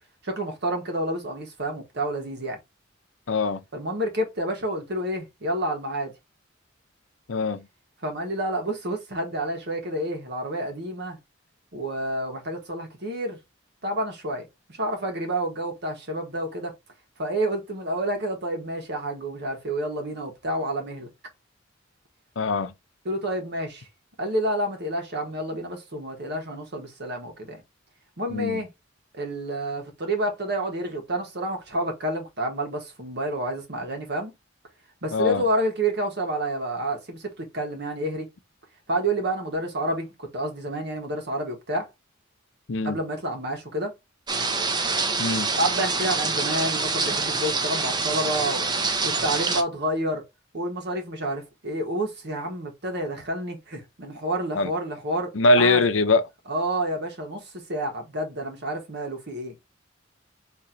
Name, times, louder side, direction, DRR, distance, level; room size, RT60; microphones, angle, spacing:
voice 1, 0.2-2.6 3.7-6.1 8.0-11.2 11.7-13.4 13.8-14.5 14.8-16.7 17.2-21.1 23.0-23.9 24.2-27.6 28.2-28.7 29.1-34.3 35.0-38.3 38.9-41.9 42.8-43.9 45.5-48.7 49.0-50.3 50.5-55.8 56.5-59.5, right 1 dB, 60° right, 1.4 m, -29 dB
voice 2, 3.3-3.6 7.3-7.7 22.4-22.7 28.3-28.6 35.1-35.4 42.7-43.0 45.2-45.5 54.5-54.7 55.3-56.3, left 3 dB, 90° left, 0.7 m, -22 dB
sound 1, 44.3-49.6, right 3 dB, 20° right, 0.6 m, -26 dB
4.4 x 3.0 x 3.8 m
head